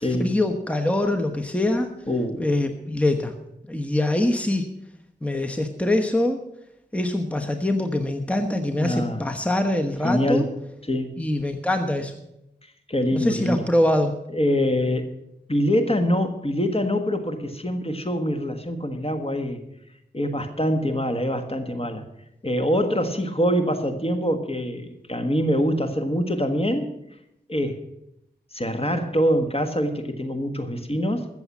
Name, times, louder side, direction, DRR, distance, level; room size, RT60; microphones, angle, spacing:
voice 1, 0.0-1.9 2.4-3.3 3.7-4.6 5.2-6.4 6.9-10.4 11.2-12.1 13.1-14.2, left 1 dB, 5° left, 5 dB, 1.1 m, -24 dB
voice 2, 2.1-2.5 8.7-9.2 10.0-10.5 10.9-11.1 12.9-13.7 14.3-15.1 15.5-19.6 20.1-22.1 22.4-26.9 27.5-27.8 28.5-31.3, equal, 35° left, 7 dB, 1.5 m, -24 dB
14.5 x 7.1 x 7.3 m, 0.83 s
wide cardioid pair, 55°, 18 cm